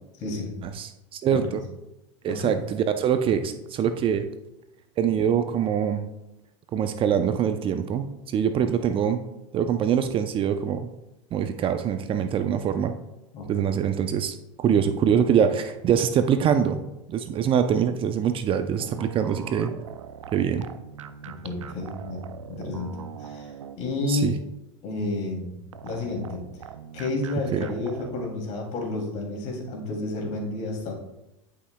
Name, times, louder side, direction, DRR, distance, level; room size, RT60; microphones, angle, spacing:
voice 1, 0.2-0.6 1.3-1.6 2.3-2.6 13.3-13.7 21.4-22.2 22.5-24.3 24.8-25.6 25.8-26.4 26.9-30.9, left 2 dB, 50° left, -1 dB, 2.8 m, -31 dB
voice 2, 0.8-1.6 2.2-4.3 5.0-6.1 6.7-9.2 9.5-10.9 11.3-13.0 13.5-16.8 17.1-19.7 20.3-20.6 24.1-24.4 27.5-27.7, right 8 dB, 35° right, 9 dB, 0.6 m, -24 dB
sound 1, 18.8-24.1 25.7-28.3, right 8 dB, 90° right, 0.5 m, -42 dB
11.0 x 5.8 x 2.3 m, 0.93 s
hypercardioid pair, 95°, 16 cm